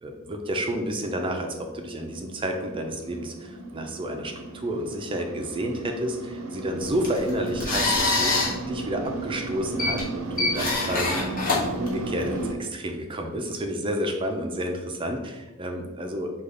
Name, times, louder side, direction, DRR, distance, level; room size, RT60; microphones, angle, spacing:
voice 1, 0.0-8.3 8.7-11.4 11.8-16.3, equal, 25° right, 3 dB, 0.4 m, -30 dB
sound 1, 1.0-12.5, right 2 dB, 80° right, 0.6 m, -35 dB
sound 2, 6.8-12.5, left 3 dB, 40° left, 1.2 m, -27 dB
4.9 x 2.4 x 3.8 m, 1.1 s
head